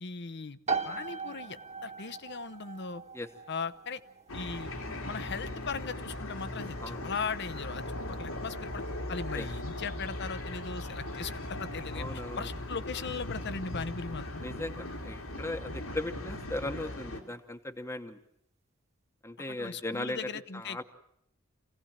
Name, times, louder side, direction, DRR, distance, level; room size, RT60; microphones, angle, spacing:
voice 1, 0.0-0.6 0.8-3.0 3.5-4.0 4.3-4.7 5.0-14.4 19.5-20.8, left 5 dB, 55° left, 14 dB, 0.9 m, -38 dB
sound 1, 0.7-15.2, right 5 dB, 30° right, 1.6 m, -43 dB
sound 2, 4.3-17.2, left 1 dB, 85° left, 3.3 m, -39 dB
voice 2, 11.9-12.5 14.4-18.2 19.2-20.8, left 1 dB, 15° left, 5 dB, 1.1 m, -38 dB
27.0 x 17.0 x 8.9 m, 0.73 s
head